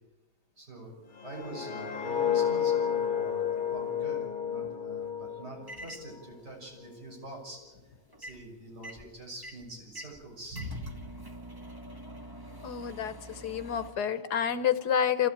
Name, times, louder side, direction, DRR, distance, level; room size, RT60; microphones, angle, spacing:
voice 1, 0.6-1.0 1.2-7.6 8.2-11.0, right 1 dB, 70° right, -3 dB, 6.9 m, -44 dB
sound 1, 1.2-6.2 6.6-6.9, left 8 dB, 40° left, 0.8 m, -31 dB
sound 2, 5.7-6.1 8.1-8.5 8.8-13.9, right 1 dB, 15° right, 1.2 m, -46 dB
voice 2, 12.6-15.3, left 8 dB, 70° left, 11 dB, 1.6 m, -29 dB
28.5 x 15.5 x 8.9 m, 1.2 s
omnidirectional pair, 1.8 m